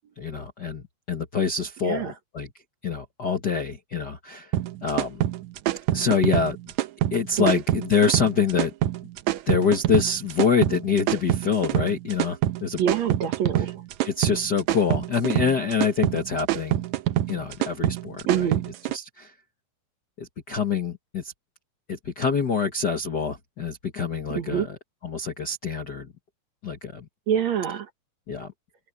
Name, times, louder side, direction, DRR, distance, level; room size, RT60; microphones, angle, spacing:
voice 1, 0.2-2.5 2.8-4.5 4.8-5.2 5.9-6.6 7.1-8.7 9.5-12.8 14.0-16.8 17.3-18.6 18.9-19.3 20.2-21.3 21.9-24.8 25.0-26.1 26.6-27.0 28.3-28.5, left 5 dB, 70° left, 0.9 m, -25 dB
sound 1, 4.5-19.0, right 13 dB, 85° right, 1.6 m, -25 dB
voice 2, 12.8-13.7 18.3-18.6 24.3-24.7 27.3-27.9, right 9 dB, 60° right, 2.1 m, -25 dB
omnidirectional pair, 4.4 m